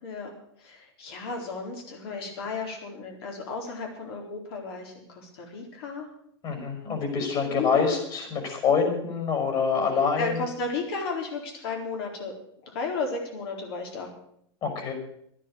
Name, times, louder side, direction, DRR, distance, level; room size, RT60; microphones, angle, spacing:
voice 1, 0.6-6.1 7.5-8.0 10.2-12.3 12.7-14.1, left 4 dB, 60° left, 2 dB, 4.2 m, -34 dB
voice 2, 6.4-10.3 14.6-14.9, left 5 dB, 35° left, 4 dB, 5.8 m, -26 dB
12.0 x 9.9 x 9.2 m, 0.71 s
supercardioid pair, 140°, 14 cm